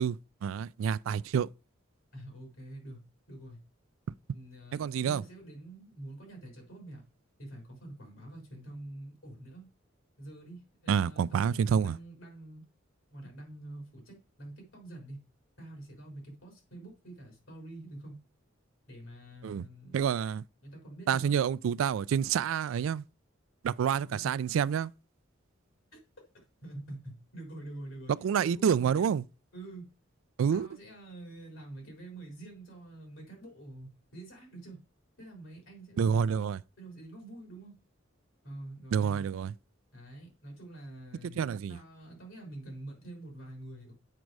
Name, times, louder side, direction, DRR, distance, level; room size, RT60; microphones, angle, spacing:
voice 1, 0.0-1.5 4.7-5.2 10.9-12.0 19.4-19.6 19.9-20.4 21.1-23.0 23.6-24.9 28.2-29.2 30.4-30.7 36.0-36.6 38.9-39.5 41.2-41.8, right 7 dB, 75° right, 0.3 m, -28 dB
voice 2, 2.1-3.0 3.3-3.6 4.3-7.0 7.4-9.7 10.2-12.6 13.1-15.2 15.6-18.2 18.9-20.0 20.6-21.5 24.0-24.3 25.9-26.0 26.6-28.1 28.4-29.1 29.5-29.9 30.5-34.8 35.2-36.4 36.8-37.8 38.4-39.3 39.9-43.9, right 1 dB, 80° left, 3.6 m, -46 dB
7.6 x 5.2 x 4.7 m
head